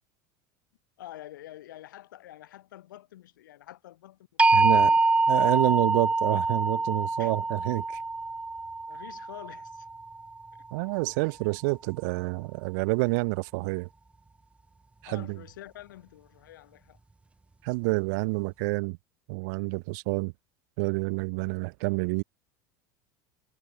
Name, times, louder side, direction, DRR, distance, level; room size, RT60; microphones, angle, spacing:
voice 1, 1.0-5.0 7.2-7.3 8.9-9.9 15.1-17.0, left 14 dB, 90° left, 3.6 m, -47 dB
sound 1, 4.4-10.4, right 3 dB, 10° right, 0.8 m, -25 dB
voice 2, 4.5-4.9 5.3-8.0 10.7-13.9 15.0-15.4 17.6-19.0 19.3-20.3 20.8-22.2, right 29 dB, 70° right, 1.7 m, -28 dB
supercardioid pair, 100°, 10 cm